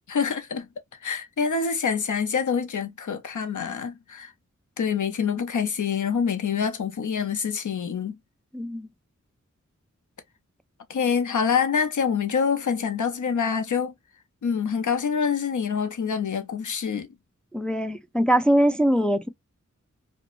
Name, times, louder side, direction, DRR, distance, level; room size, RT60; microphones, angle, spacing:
voice 1, 0.1-0.7 1.0-4.3 4.8-8.2 10.9-13.9 14.4-17.1, left 6 dB, 80° left, 0.6 m, -26 dB
voice 2, 8.5-8.9 17.5-19.3, right 1 dB, 5° left, 0.3 m, -22 dB
2.5 x 2.2 x 2.8 m
wide cardioid pair, 75°, 30 cm